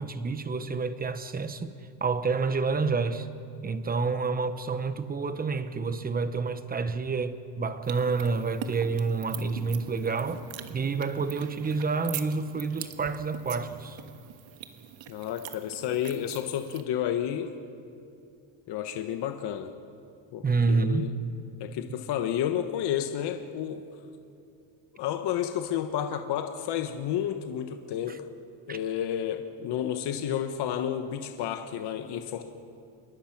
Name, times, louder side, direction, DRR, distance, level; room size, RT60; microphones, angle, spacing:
voice 1, 0.0-3.3 3.6-10.4 10.7-14.0 20.4-21.2 28.1-28.2 28.7-28.8, right 4 dB, 20° right, 0.9 m, -29 dB
sound 1, 7.8-16.8, right 11 dB, 70° right, 1.6 m, -43 dB
voice 2, 15.1-17.5 18.7-19.7 20.3-21.1 21.6-23.8 25.0-28.3 28.7-32.5, left 10 dB, 55° left, 1.3 m, -31 dB
28.0 x 22.5 x 6.0 m
cardioid pair, 150°, 47 cm